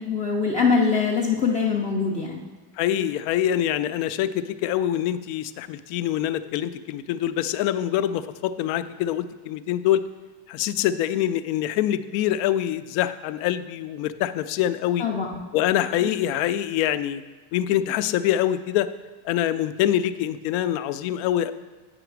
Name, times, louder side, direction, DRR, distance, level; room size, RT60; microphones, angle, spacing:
voice 1, 0.0-2.4 15.0-15.4 16.0-16.1, left 5 dB, 15° left, -3 dB, 0.4 m, -23 dB
voice 2, 2.8-10.0 10.5-15.0 15.5-17.2 17.5-18.9 19.2-21.5, left 11 dB, 75° left, 13 dB, 0.6 m, -25 dB
8.8 x 4.9 x 4.7 m, 1.3 s
cardioid pair, 150°, 49 cm